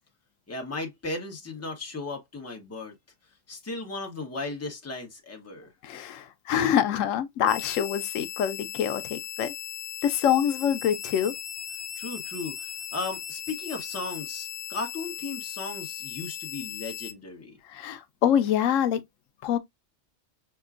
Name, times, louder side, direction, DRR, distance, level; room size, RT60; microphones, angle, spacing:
voice 1, 0.5-2.9 3.5-5.7 12.0-17.6, left 3 dB, 15° left, 0.8 m, -36 dB
voice 2, 5.8-9.5 10.0-11.3 17.7-19.0 19.4-19.6, left 9 dB, 80° left, 0.9 m, -25 dB
sound 1, 7.5-17.1, left 10 dB, 60° left, 0.5 m, -38 dB
5.7 x 2.2 x 2.4 m
omnidirectional pair, 1.3 m